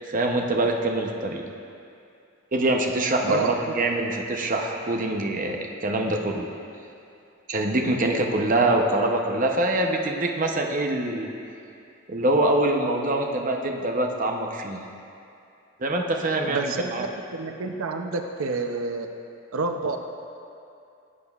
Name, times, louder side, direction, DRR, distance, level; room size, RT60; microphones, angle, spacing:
voice 1, 0.0-1.4 2.5-6.5 7.5-11.3 12.1-14.8 15.8-17.0, right 1 dB, 40° right, 1 dB, 0.7 m, -24 dB
voice 2, 3.3-3.7 8.5-8.7 16.5-19.1 19.5-20.0, right 4 dB, 85° right, 5 dB, 0.6 m, -29 dB
16.0 x 8.3 x 2.4 m, 2.6 s
head